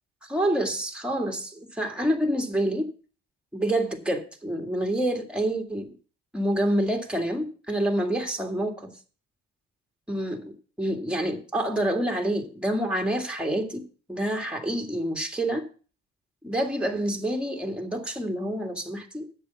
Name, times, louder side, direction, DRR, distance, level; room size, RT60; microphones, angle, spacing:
voice 1, 0.2-2.9 3.5-5.9 6.3-8.9 10.1-15.7 16.4-19.2, right 1 dB, 5° right, 4 dB, 2.0 m, -27 dB
9.0 x 6.8 x 6.8 m, 0.39 s
cardioid pair, 90°, 30 cm